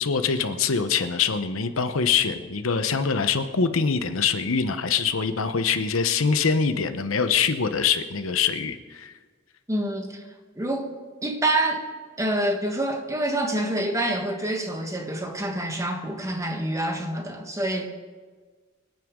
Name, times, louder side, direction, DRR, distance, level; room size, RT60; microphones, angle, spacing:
voice 1, 0.0-9.1, left 5 dB, 90° left, 0.9 m, -24 dB
voice 2, 9.7-10.2 10.6-10.9 11.2-11.8 12.2-17.9, right 1 dB, 15° right, 1.4 m, -27 dB
26.0 x 9.2 x 3.8 m
head